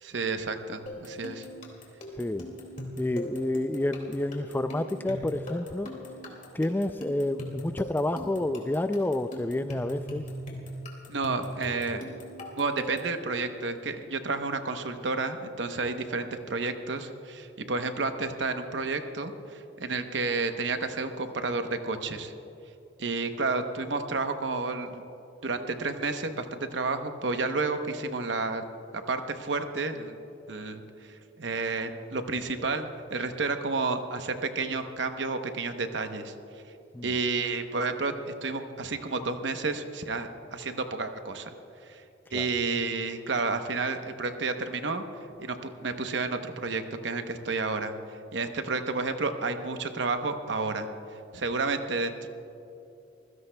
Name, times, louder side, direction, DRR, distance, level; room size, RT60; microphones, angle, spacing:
voice 1, 0.0-1.5 11.1-12.0 12.6-22.3 23.0-25.0 25.4-28.6 29.1-30.2 30.5-30.8 31.1-32.8 33.1-36.3 37.0-41.5 41.9-42.0 42.3-45.0 45.4-47.9 48.3-50.9 51.3-52.3, right 3 dB, 65° right, 7 dB, 0.9 m, -31 dB
sound 1, 0.9-13.2, equal, 40° left, 2.3 m, -40 dB
voice 2, 2.2-2.5 3.0-5.9 6.5-10.2 36.9-37.1 42.3-42.5, left 1 dB, 10° left, 10 dB, 0.3 m, -29 dB
25.5 x 16.0 x 2.2 m, 2.8 s
head